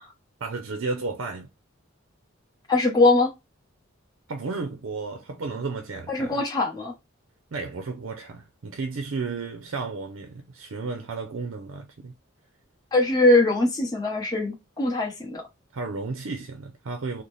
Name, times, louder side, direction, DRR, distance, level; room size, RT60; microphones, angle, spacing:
voice 1, 0.4-1.5 4.3-6.4 7.5-12.1 15.7-17.2, right 4 dB, 70° right, 0.5 m, -33 dB
voice 2, 2.7-3.3 6.1-6.9 12.9-15.4, left 2 dB, 20° left, 1.0 m, -21 dB
3.9 x 2.1 x 3.1 m
head